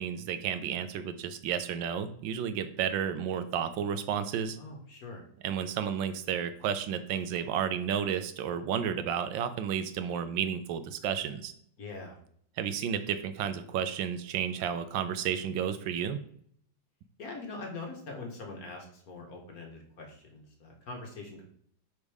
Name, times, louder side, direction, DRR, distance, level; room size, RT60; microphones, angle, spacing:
voice 1, 0.0-4.6 5.4-11.5 12.6-16.2, right 8 dB, 80° right, 10 dB, 1.3 m, -32 dB
voice 2, 4.6-5.2 11.8-12.2 17.2-21.4, left 3 dB, 55° left, 1 dB, 1.5 m, -43 dB
5.2 x 4.2 x 4.8 m, 0.64 s
omnidirectional pair, 2.1 m